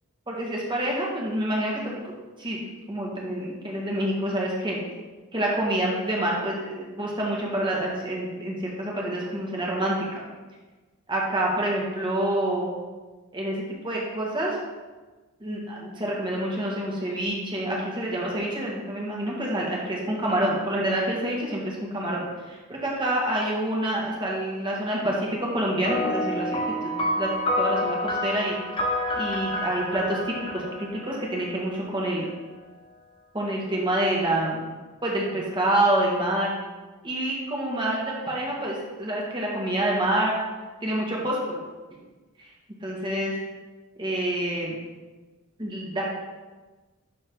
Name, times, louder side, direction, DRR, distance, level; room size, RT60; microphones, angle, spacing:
voice 1, 0.3-2.1 2.4-2.6 2.9-4.8 5.3-10.2 11.1-12.7 13.3-14.6 15.4-27.3 27.6-28.6 29.2-32.2 33.3-34.6 35.0-36.5 37.0-40.3 40.8-41.6 42.4-42.5 42.8-43.3 44.0-44.7 45.6-46.1, right 1 dB, 20° right, -3 dB, 1.6 m, -27 dB
sound 1, 25.9-31.6, left 1 dB, 25° left, 0.6 m, -28 dB
11.5 x 3.8 x 3.9 m, 1.3 s
head